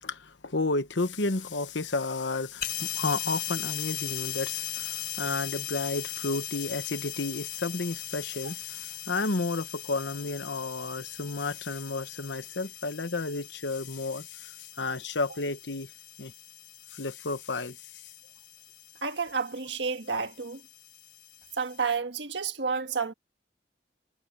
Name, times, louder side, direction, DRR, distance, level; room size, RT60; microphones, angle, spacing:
voice 1, 0.0-15.9 16.2-16.3 16.9-18.0, left 3 dB, 70° left, 1.2 m, -32 dB
sound 1, 2.6-22.0, left 13 dB, 50° left, 5.3 m, -39 dB
voice 2, 19.0-20.6 21.6-23.1, right 5 dB, 70° right, 1.6 m, -30 dB
head